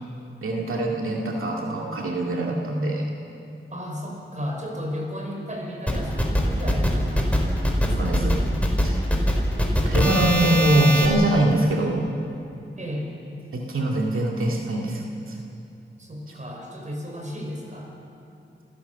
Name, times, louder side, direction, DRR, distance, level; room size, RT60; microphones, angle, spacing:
voice 1, 0.4-3.1 7.9-8.4 8.8-9.0 9.9-12.1 13.5-15.4, right 1 dB, 85° right, -1 dB, 2.2 m, -23 dB
voice 2, 3.7-8.3 12.8-13.1 16.0-17.9, equal, 35° right, 0 dB, 5.6 m, -34 dB
sound 1, 5.9-11.1, equal, 5° left, 3.9 m, -22 dB
26.5 x 16.5 x 7.1 m, 2.6 s
wide cardioid pair, 85°, 21 cm